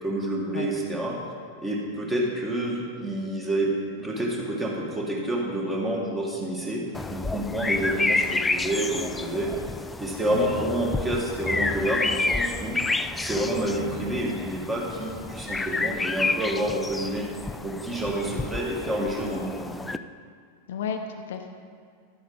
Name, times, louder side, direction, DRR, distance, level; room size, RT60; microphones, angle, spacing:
voice 1, 0.0-1.2 1.6-3.7 4.0-6.8 7.1-9.5 10.0-12.8 13.2-17.3 17.6-19.7, right 1 dB, 15° right, -2 dB, 2.0 m, -28 dB
sound 1, 6.9-20.0, left 3 dB, 10° left, 0.3 m, -30 dB
voice 2, 20.7-21.5, left 6 dB, 60° left, 5 dB, 0.7 m, -33 dB
11.5 x 8.4 x 4.1 m, 2.1 s
figure-of-eight pair, 90°, 0 cm